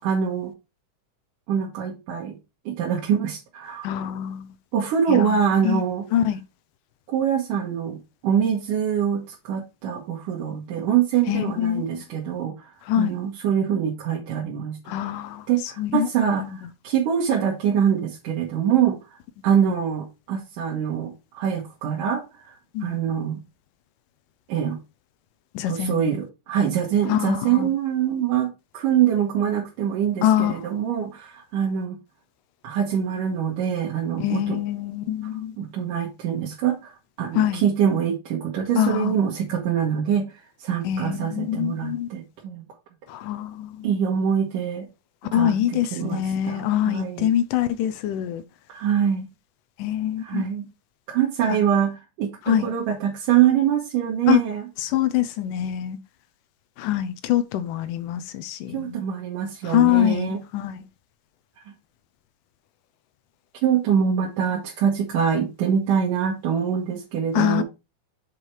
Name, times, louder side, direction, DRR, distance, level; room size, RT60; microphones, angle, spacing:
voice 1, 0.0-0.5 1.5-2.3 2.7-3.9 4.7-6.1 7.1-8.0 8.2-14.8 15.5-19.0 19.4-22.5 22.8-23.4 24.5-24.8 25.7-32.0 32.6-34.6 35.6-40.3 40.6-42.6 43.8-44.9 45.3-47.3 48.7-49.3 50.2-50.7 51.1-54.6 58.7-60.4 61.7-61.8 63.6-67.6, right 8 dB, 80° right, 2.9 m, -24 dB
voice 2, 3.8-4.5 5.1-5.8 6.1-6.4 11.3-12.0 12.8-13.1 14.9-15.5 15.8-16.7 19.6-19.7 22.7-23.0 25.5-26.2 27.1-27.7 30.2-30.6 34.2-35.6 37.3-37.6 38.8-39.2 40.8-42.1 43.1-43.9 45.3-48.4 49.8-50.4 52.5-52.7 54.3-54.4 54.8-56.0 56.8-59.0 59.6-60.8 67.3-67.6, left 11 dB, 90° left, 2.4 m, -24 dB
7.2 x 5.0 x 4.6 m
omnidirectional pair, 3.7 m